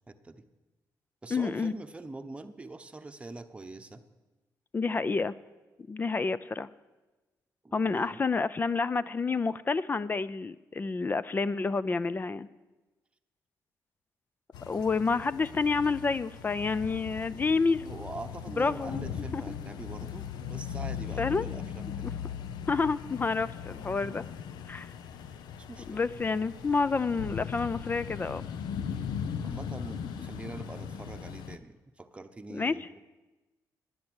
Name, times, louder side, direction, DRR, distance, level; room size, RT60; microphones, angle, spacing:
voice 1, 0.1-0.4 1.2-4.0 7.6-8.2 17.8-22.0 25.6-26.0 28.8-29.1 29.4-33.0, right 2 dB, 15° right, 7 dB, 0.9 m, -44 dB
voice 2, 1.3-1.7 4.7-5.3 5.9-6.7 7.7-12.5 14.7-17.9 18.6-19.0 19.3-19.5 21.2-21.5 22.0-22.1 22.7-24.2 24.7-24.9 25.9-28.5 32.5-32.7, left 4 dB, 25° left, 17 dB, 0.4 m, -29 dB
sound 1, 14.5-31.6, left 8 dB, 90° left, 0.7 m, -39 dB
10.5 x 9.5 x 8.8 m, 1.2 s
cardioid pair, 110°, 7 cm